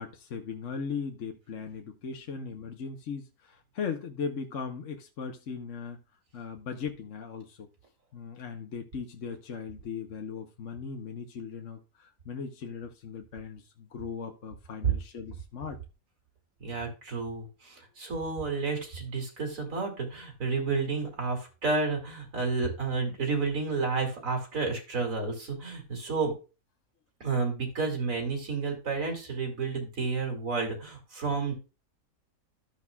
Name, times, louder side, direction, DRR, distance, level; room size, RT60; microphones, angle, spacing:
voice 1, 0.0-6.0 6.3-7.7 8.1-15.8, left 6 dB, 55° left, 3 dB, 1.3 m, -38 dB
voice 2, 16.6-26.3 27.2-31.5, right 4 dB, 60° right, 1 dB, 3.1 m, -31 dB
13.5 x 6.5 x 2.3 m, 0.31 s
omnidirectional pair, 1.6 m